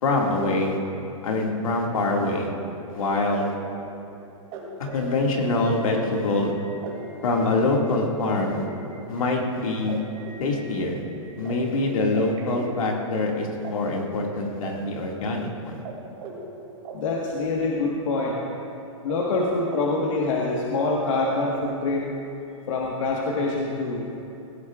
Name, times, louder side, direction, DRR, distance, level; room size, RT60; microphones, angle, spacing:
voice 1, 0.0-0.8 1.2-2.5 2.9-3.5 4.8-6.5 7.2-8.6 9.1-10.0 10.4-11.0 11.4-15.8, left 2 dB, 85° left, -1 dB, 2.2 m, -24 dB
sound 1, 2.6-13.7 14.0-15.5 15.9-16.0 16.2-18.2 18.5-19.2 19.4-20.8 21.2-21.3, right 4 dB, 35° right, 2.7 m, -40 dB
voice 2, 16.9-18.4 19.0-22.1 22.7-24.0, left 3 dB, 65° left, -2 dB, 1.5 m, -25 dB
18.0 x 16.0 x 2.5 m, 2.7 s
hypercardioid pair, 150°, 17 cm